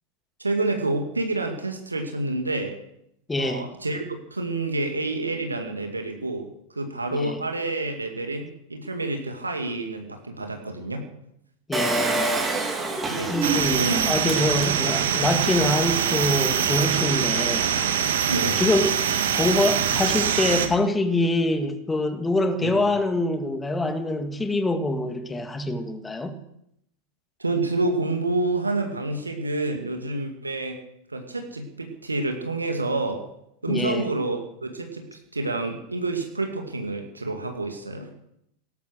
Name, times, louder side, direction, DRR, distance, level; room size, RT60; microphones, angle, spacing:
voice 1, 0.4-2.8 3.4-11.0 13.1-13.4 13.7-14.6 17.4-17.6 18.3-18.6 22.6-22.8 27.4-30.8 31.1-33.3 33.6-38.1, right 2 dB, 80° right, 2.2 m, -28 dB
voice 2, 3.3-3.7 7.1-7.4 11.7-12.3 13.3-17.7 18.6-19.0 19.3-26.4 33.7-34.1, left 2 dB, 10° left, 1.9 m, -25 dB
Engine, 11.7-15.2 15.7-15.8 15.9-16.0, right 2 dB, 15° right, 3.7 m, -27 dB
sound 1, 13.4-20.7, right 8 dB, 60° right, 2.1 m, -24 dB
18.5 x 12.0 x 6.5 m
figure-of-eight pair, 90°, 0 cm